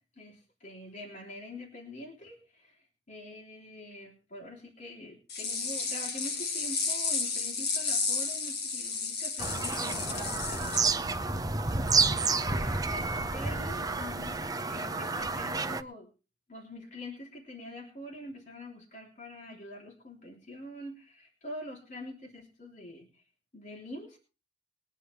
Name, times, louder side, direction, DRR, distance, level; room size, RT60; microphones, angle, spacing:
voice 1, 0.2-11.0 12.1-14.4 14.7-16.1 16.5-23.1 23.5-24.2, left 1 dB, 45° left, -1 dB, 3.3 m, -45 dB
sound 1, 5.3-10.8, left 5 dB, 60° left, 2.4 m, -32 dB
Bird vocalization bird call bird song, 9.4-15.8, right 4 dB, 20° right, 0.7 m, -30 dB
21.5 x 9.9 x 3.4 m, 0.33 s
head